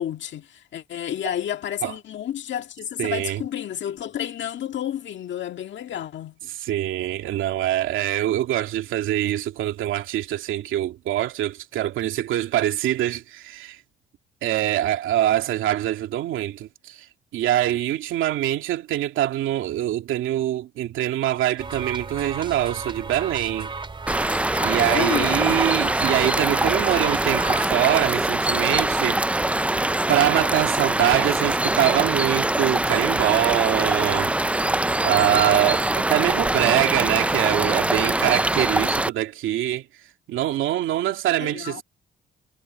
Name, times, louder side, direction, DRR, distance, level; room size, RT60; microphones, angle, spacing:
voice 1, 0.0-6.5 24.8-25.6 41.4-41.8, left 10 dB, 65° left, 1.8 m, -30 dB
voice 2, 3.0-3.4 6.6-13.8 14.4-17.1 17.3-23.7 24.6-29.2 30.1-34.3 35.0-39.9 40.3-41.8, right 13 dB, 85° right, 2.5 m, -24 dB
sound 1, 21.6-27.7, right 4 dB, 25° right, 3.0 m, -33 dB
sound 2, 24.1-39.1, right 1 dB, 5° right, 0.5 m, -23 dB
cardioid pair, 90°, 20 cm